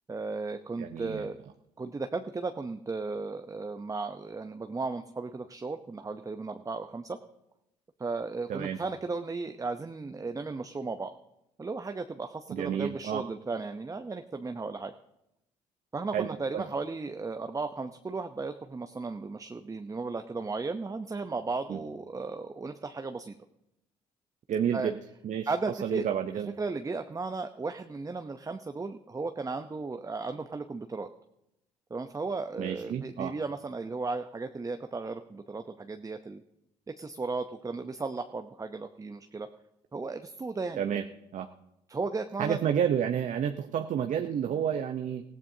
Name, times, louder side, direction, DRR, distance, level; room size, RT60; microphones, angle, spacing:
voice 1, 0.1-1.4 1.8-7.2 8.0-11.1 11.6-14.9 15.9-23.4 24.7-24.9 25.5-26.1 26.6-31.1 31.9-36.4 37.0-39.5 39.9-40.8 41.9-42.7, right 3 dB, 25° right, 7 dB, 0.7 m, -35 dB
voice 2, 0.8-1.3 8.5-8.8 12.5-13.2 16.1-16.3 16.5-16.6 21.7-21.8 24.5-25.0 25.2-25.5 25.8-26.5 32.6-33.3 40.8-41.0 41.3-41.5 42.4-45.2, right 8 dB, 55° right, 6 dB, 0.8 m, -30 dB
19.5 x 15.5 x 2.8 m, 0.85 s
hypercardioid pair, 55°, 15 cm